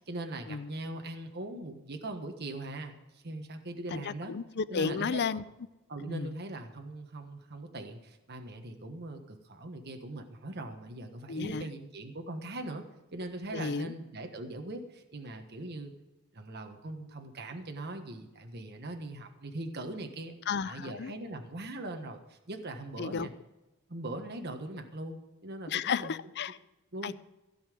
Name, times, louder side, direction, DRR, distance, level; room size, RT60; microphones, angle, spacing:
voice 1, 0.0-4.4 4.7-5.4 5.9-12.8 13.1-15.9 16.3-20.4 20.6-23.3 23.9-26.2 26.9-27.1, right 2 dB, 50° right, 5 dB, 1.3 m, -41 dB
voice 2, 3.9-5.4 6.1-6.3 11.3-11.7 13.5-13.9 20.5-21.1 23.0-23.3 25.7-26.6 27.0-27.2, left 5 dB, 50° left, 15 dB, 0.5 m, -33 dB
16.0 x 5.7 x 9.3 m, 1.0 s
head